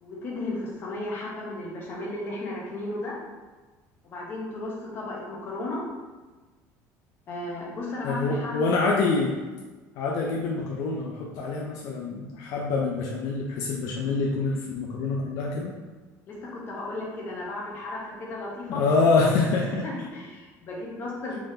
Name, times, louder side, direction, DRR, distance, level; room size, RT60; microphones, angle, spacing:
voice 1, 0.0-3.2 4.0-5.8 7.3-8.6 16.3-18.8 19.8-21.4, left 2 dB, 35° left, -3 dB, 0.9 m, -34 dB
voice 2, 8.0-9.3 10.0-15.7 18.7-19.9, left 3 dB, 60° left, -1 dB, 0.4 m, -26 dB
3.5 x 3.5 x 2.7 m, 1.3 s
cardioid pair, 170°, 6 cm